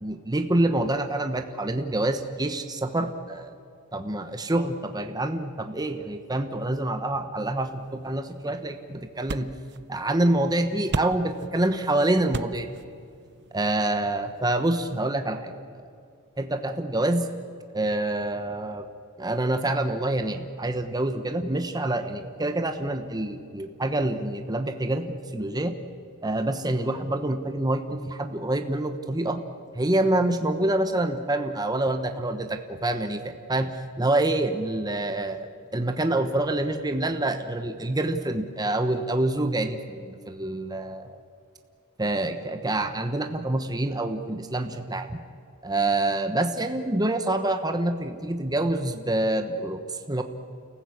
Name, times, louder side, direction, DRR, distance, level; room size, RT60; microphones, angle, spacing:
voice 1, 0.0-3.5 3.9-9.5 9.9-12.7 13.5-15.5 16.4-17.3 17.7-18.8 19.2-25.7 26.2-29.4 29.7-33.7 34.0-35.5 35.7-41.2 42.0-45.2 45.6-50.2, right 1 dB, 20° right, 7 dB, 1.1 m, -26 dB
sound 1, 7.6-14.7, right 3 dB, 50° right, 0.7 m, -39 dB
29.5 x 15.0 x 8.5 m, 2.3 s
head